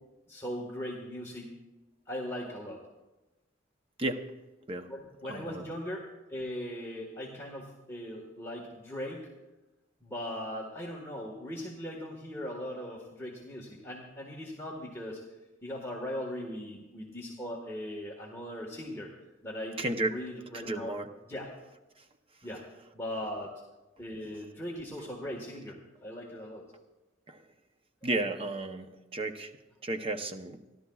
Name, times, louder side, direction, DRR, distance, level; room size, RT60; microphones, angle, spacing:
voice 1, 0.3-1.5 2.1-2.8 4.9-9.3 10.0-15.2 15.6-19.1 19.4-19.8 20.1-20.9 21.3-21.5 22.4-22.6 22.9-23.5 24.0-26.6, equal, 15° left, -3 dB, 1.5 m, -39 dB
voice 2, 5.3-5.7 19.8-20.1 20.5-21.1 27.3-27.4 28.0-29.5 29.8-30.6, right 2 dB, 30° right, 7 dB, 0.8 m, -33 dB
30.0 x 12.0 x 2.4 m, 1.1 s
head